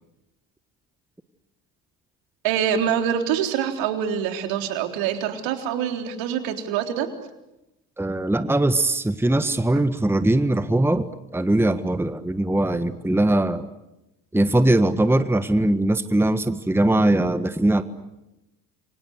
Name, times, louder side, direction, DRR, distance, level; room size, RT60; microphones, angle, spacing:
voice 1, 2.4-7.1, right 9 dB, 70° right, 5 dB, 3.9 m, -25 dB
voice 2, 8.0-11.1 11.3-13.6 14.3-17.8, right 1 dB, 5° right, 11 dB, 1.5 m, -21 dB
29.0 x 25.0 x 8.0 m, 0.94 s
hypercardioid pair, 65°, 47 cm